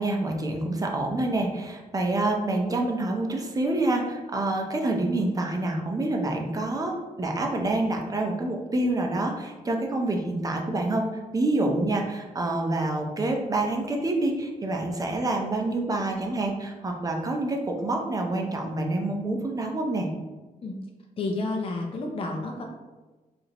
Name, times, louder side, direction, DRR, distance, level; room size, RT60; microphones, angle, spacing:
voice 1, 0.0-11.1 11.3-20.1, right 2 dB, 25° right, 1 dB, 0.7 m, -27 dB
voice 2, 21.2-22.6, left 2 dB, 40° left, 1 dB, 0.6 m, -30 dB
4.8 x 2.5 x 2.9 m, 1.2 s
cardioid pair, 95°, 14 cm